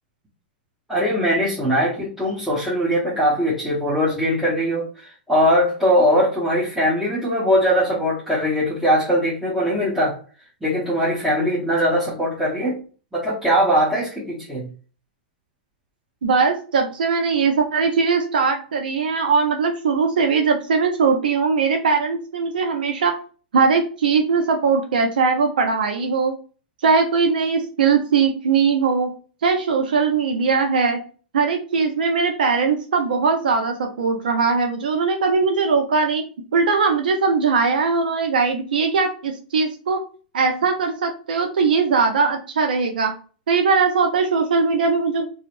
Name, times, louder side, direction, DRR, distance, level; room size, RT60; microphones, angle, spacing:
voice 1, 0.9-10.2 10.6-12.8 13.1-14.7, equal, 5° right, -8 dB, 0.9 m, -21 dB
voice 2, 16.2-23.2 23.5-26.3 26.8-29.1 29.4-31.0 31.3-36.2 36.5-40.0 40.3-43.1 43.5-45.2, right 5 dB, 75° right, 4 dB, 0.5 m, -20 dB
2.8 x 2.0 x 2.5 m, 0.38 s
hypercardioid pair, 105°, 5 cm